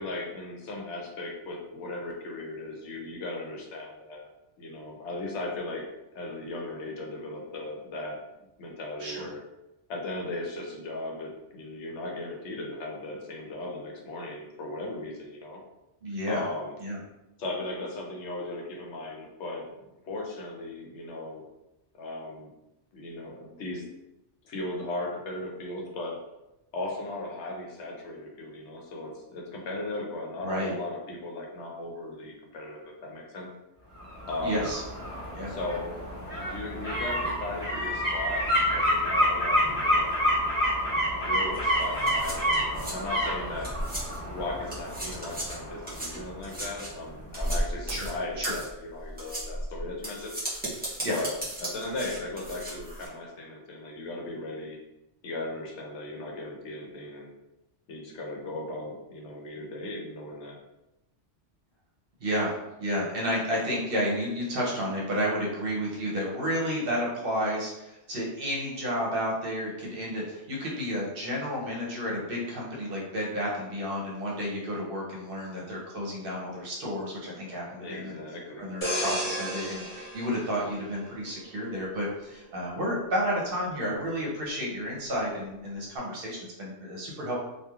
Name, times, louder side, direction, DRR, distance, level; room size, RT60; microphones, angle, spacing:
voice 1, 0.0-4.3 4.6-5.8 6.1-8.2 8.6-9.4 9.9-15.6 16.3-16.7 17.4-21.5 21.9-22.5 22.9-23.8 24.4-26.2 26.7-33.5 34.3-34.7 35.5-35.9 36.3-38.5 38.7-40.5 41.2-43.7 44.3-50.3 51.1-51.3 51.6-54.8 55.2-57.3 57.9-60.6 77.8-78.6, left 2 dB, 75° left, -1 dB, 0.9 m, -37 dB
voice 2, 16.0-16.4 16.8-17.0 30.4-30.7 34.4-34.8 35.3-35.5 47.9-48.1 48.4-48.5 51.0-51.2 62.2-78.2 78.6-87.4, equal, 60° right, -3 dB, 0.8 m, -31 dB
sound 1, 34.0-46.8 47.2-47.3, equal, 20° left, 1.2 m, -29 dB
sound 2, 41.5-44.3 44.6-53.1, right 1 dB, 10° right, 0.6 m, -35 dB
sound 3, 78.8-81.5 81.9-82.2, equal, 45° left, 1.2 m, -33 dB
3.0 x 2.3 x 2.3 m, 0.94 s
omnidirectional pair, 1.2 m